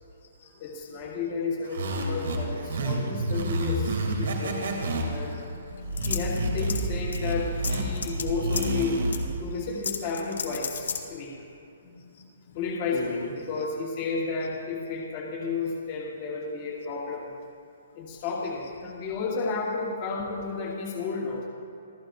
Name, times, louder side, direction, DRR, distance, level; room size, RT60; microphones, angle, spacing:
voice 1, 0.6-5.4 6.0-9.0 9.4-11.3 12.5-17.3 17.9-21.5, left 4 dB, 25° left, -4 dB, 1.4 m, -32 dB
sound 1, 1.6-9.3, right 1 dB, 65° right, 2.9 m, -29 dB
voice 2, 5.1-6.2 7.9-8.0 11.8-12.6 12.9-13.3, left 5 dB, 40° left, 0 dB, 1.6 m, -41 dB
sound 2, 6.0-6.9 7.1-7.2 7.6-8.2 8.5-8.8 9.1-9.2 9.8-11.0, left 6 dB, 80° left, 1.7 m, -32 dB
27.0 x 14.5 x 2.6 m, 2.7 s
hypercardioid pair, 180°, 0 cm